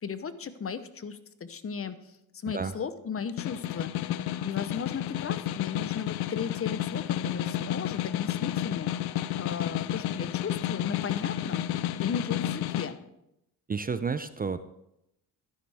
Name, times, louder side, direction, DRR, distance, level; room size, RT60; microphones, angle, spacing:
voice 1, 0.0-13.0, left 6 dB, 35° left, 13 dB, 0.9 m, -36 dB
Snare drum, 3.2-12.9, left 12 dB, 80° left, 0.6 m, -31 dB
voice 2, 13.7-14.6, right 5 dB, 25° right, 12 dB, 0.5 m, -31 dB
12.5 x 11.0 x 3.5 m, 0.83 s
cardioid pair, 80°, 38 cm